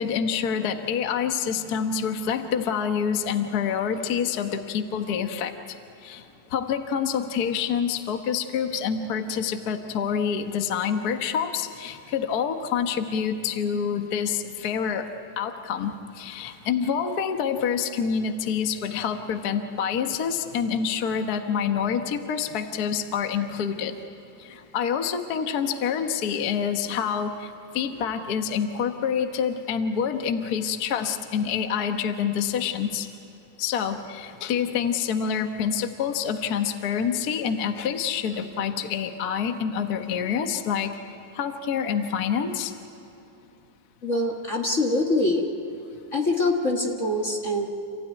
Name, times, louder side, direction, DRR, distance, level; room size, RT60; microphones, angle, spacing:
voice 1, 0.0-5.8 6.0-6.2 6.5-15.1 15.4-24.0 24.4-33.1 33.6-40.9 41.3-42.7, left 7 dB, 75° left, 6 dB, 0.8 m, -27 dB
voice 2, 44.0-45.4 46.1-47.6, left 2 dB, 35° left, 0 dB, 1.3 m, -24 dB
28.0 x 16.0 x 9.5 m, 2.9 s
omnidirectional pair, 3.7 m